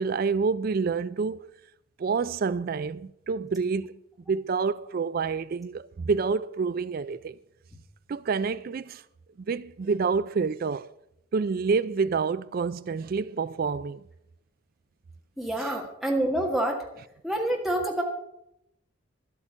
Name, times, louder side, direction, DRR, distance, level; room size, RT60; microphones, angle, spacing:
voice 1, 0.0-1.4 2.0-4.0 4.3-7.4 8.1-9.0 9.5-10.9 11.3-14.0 15.6-15.7, right 5 dB, 45° right, 0.3 m, -28 dB
voice 2, 15.4-16.8 17.2-18.0, right 1 dB, ahead, 2.0 m, -27 dB
12.0 x 8.3 x 7.3 m
head